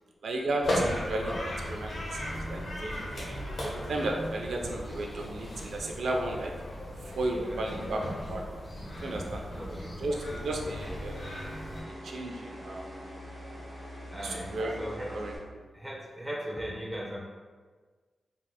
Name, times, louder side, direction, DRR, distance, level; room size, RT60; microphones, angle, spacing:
voice 1, 0.2-1.3 1.7-6.5 7.0-8.4 9.0-11.3 12.0-12.9 14.2-14.8 15.1-15.3, right 2 dB, 80° right, 1 dB, 0.3 m, -34 dB
sound 1, 0.6-11.8, left 1 dB, 60° left, 0.7 m, -36 dB
sound 2, 5.9-15.4, equal, 25° right, 1.2 m, -46 dB
voice 2, 7.2-8.1 8.9-10.0 14.1-15.3 15.7-17.2, equal, 5° right, -3 dB, 0.5 m, -39 dB
3.1 x 2.8 x 2.2 m, 1.4 s
wide cardioid pair, 120°, 0 cm